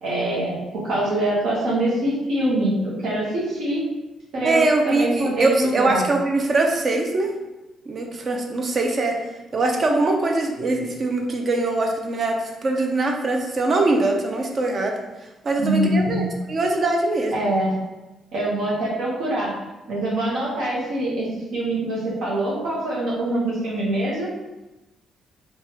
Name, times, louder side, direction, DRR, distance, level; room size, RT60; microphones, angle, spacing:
voice 1, 0.0-3.8 4.3-6.0 15.6-16.3 17.3-17.7 18.3-19.5 19.9-24.3, right 1 dB, 75° right, -6 dB, 0.8 m, -24 dB
voice 2, 4.4-7.3 7.9-9.1 9.5-14.9 15.4-17.4, right 2 dB, 45° right, 2 dB, 0.5 m, -22 dB
3.2 x 2.3 x 2.8 m, 1.0 s
cardioid pair, 90°, 0 cm